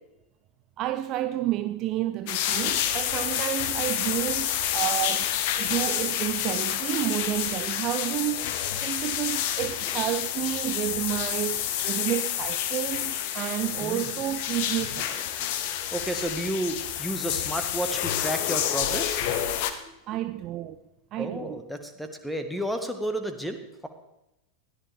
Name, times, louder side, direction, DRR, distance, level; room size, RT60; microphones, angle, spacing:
voice 1, 0.8-5.3 5.6-15.1 20.1-20.8 21.1-21.6, right 14 dB, 35° right, 0.5 m, -30 dB
sound 1, 2.3-19.7, left 11 dB, 45° left, 1.2 m, -29 dB
voice 2, 13.8-14.1 15.1-15.2 15.9-20.0 21.2-23.9, right 1 dB, ahead, 1.7 m, -32 dB
20.5 x 14.0 x 3.5 m
figure-of-eight pair, 90°, 0 cm